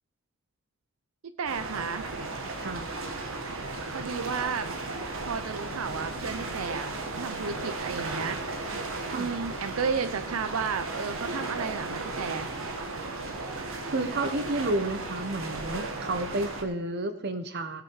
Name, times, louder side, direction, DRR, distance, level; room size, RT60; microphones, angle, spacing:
voice 1, 1.2-2.1 3.9-4.7 5.2-8.8 9.1-12.5, right 5 dB, 85° right, 11 dB, 0.6 m, -33 dB
sound 1, 1.4-16.6, right 2 dB, 70° right, 1.5 m, -35 dB
voice 2, 13.9-17.8, right 2 dB, 55° right, 10 dB, 1.1 m, -31 dB
17.5 x 6.8 x 4.7 m, 0.80 s
head